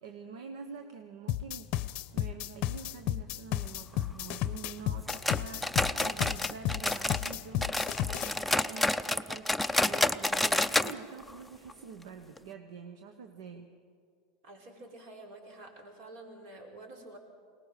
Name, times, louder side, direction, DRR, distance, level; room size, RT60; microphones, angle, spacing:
voice 1, 0.0-1.7 2.1-13.7, right 6 dB, 85° right, 6 dB, 1.1 m, -46 dB
sound 1, 1.3-8.3, left 14 dB, 50° left, 0.6 m, -33 dB
sound 2, 5.1-7.3 7.6-10.9 11.2-11.3 11.7-11.8 12.4-12.5, left 1 dB, ahead, 0.5 m, -29 dB
voice 2, 14.4-17.2, right 2 dB, 65° right, 1 dB, 4.6 m, -49 dB
22.5 x 19.0 x 6.7 m, 2.2 s
supercardioid pair, 130°, 3 cm